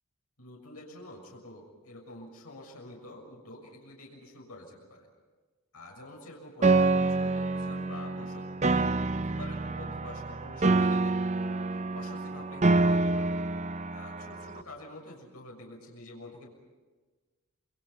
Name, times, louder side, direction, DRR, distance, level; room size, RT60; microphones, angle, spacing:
voice 1, 0.4-5.1 5.7-8.7 9.1-13.3 13.9-16.5, left 1 dB, 80° left, -1 dB, 6.6 m, -47 dB
Piano, 6.6-14.6, right 3 dB, 30° right, 0.7 m, -27 dB
28.5 x 25.5 x 5.7 m, 1.3 s
head